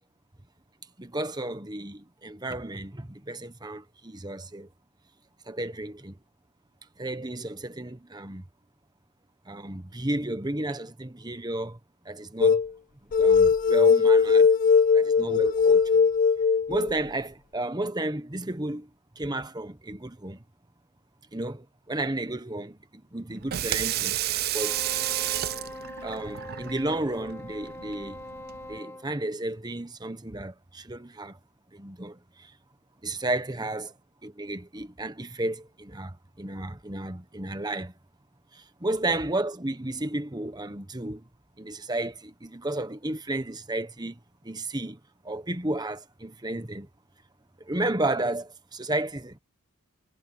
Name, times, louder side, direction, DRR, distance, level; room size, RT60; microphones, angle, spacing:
voice 1, 1.0-4.7 5.5-6.2 7.0-8.4 9.5-11.8 12.0-12.6 13.2-14.5 14.9-16.1 16.7-18.9 19.1-20.4 21.3-24.2 24.5-24.8 26.0-28.2 28.7-31.4 31.7-32.5 33.0-33.9 34.2-37.9 38.5-41.3 41.6-46.9 47.6-49.4, right 2 dB, 20° right, 1.3 m, -33 dB
sound 1, 12.4-12.7 13.1-16.9, left 5 dB, 40° left, 0.4 m, -20 dB
Water tap faucet / Sink (filling or washing), 23.3-28.8, right 13 dB, 45° right, 0.4 m, -31 dB
Wind instrument woodwind instrument, 24.6-29.1, left 1 dB, 10° left, 2.2 m, -42 dB
head